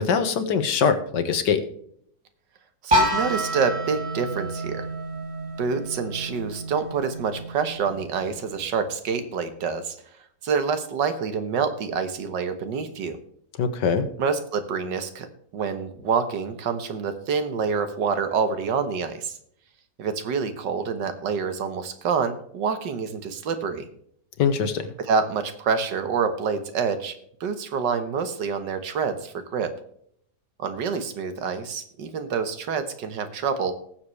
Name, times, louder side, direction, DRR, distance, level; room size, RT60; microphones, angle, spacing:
voice 1, 0.0-1.6 13.6-14.1 24.4-24.9, left 6 dB, 85° left, 8 dB, 1.9 m, -22 dB
voice 2, 2.8-4.9 5.6-10.0 10.4-13.2 14.2-19.4 20.0-23.9 25.0-29.7 30.6-33.7, right 5 dB, 85° right, 9 dB, 1.8 m, -27 dB
sound 1, 2.9-8.7, right 1 dB, 20° right, 1.5 m, -29 dB
19.5 x 7.4 x 3.2 m, 0.67 s
omnidirectional pair, 1.9 m